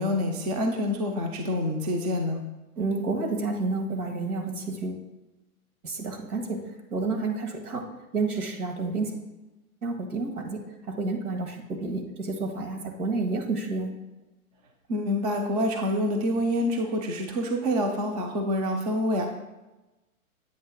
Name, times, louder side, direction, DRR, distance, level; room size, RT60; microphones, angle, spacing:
voice 1, 0.0-2.4 14.9-19.3, left 1 dB, 30° right, 3 dB, 0.5 m, -27 dB
voice 2, 2.8-5.0 5.8-7.9 8.1-9.2 9.8-13.9, right 3 dB, 80° right, 3 dB, 1.8 m, -30 dB
8.1 x 2.9 x 6.2 m, 1.1 s
hypercardioid pair, 155°, 44 cm